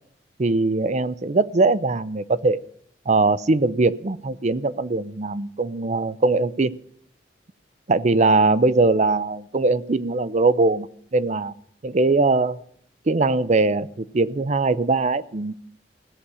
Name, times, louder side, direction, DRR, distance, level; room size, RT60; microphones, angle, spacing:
voice 1, 0.4-2.6 3.1-6.7 7.9-10.9 11.1-11.5 11.8-12.6 13.1-15.5, right 3 dB, 40° right, 16 dB, 0.6 m, -21 dB
17.0 x 7.1 x 9.7 m, 0.67 s
head